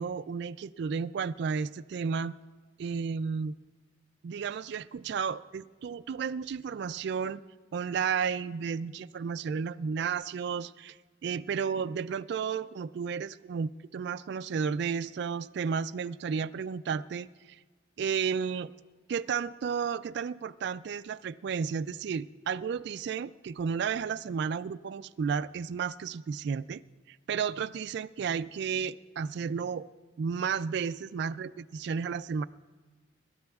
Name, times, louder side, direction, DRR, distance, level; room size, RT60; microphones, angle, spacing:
voice 1, 0.0-2.3 2.8-3.5 4.2-7.4 7.7-11.0 11.2-17.6 18.0-18.7 19.1-26.8 27.1-29.9 30.2-32.4, right 6 dB, 65° right, 12 dB, 0.3 m, -32 dB
26.0 x 12.5 x 2.4 m, 1.4 s
head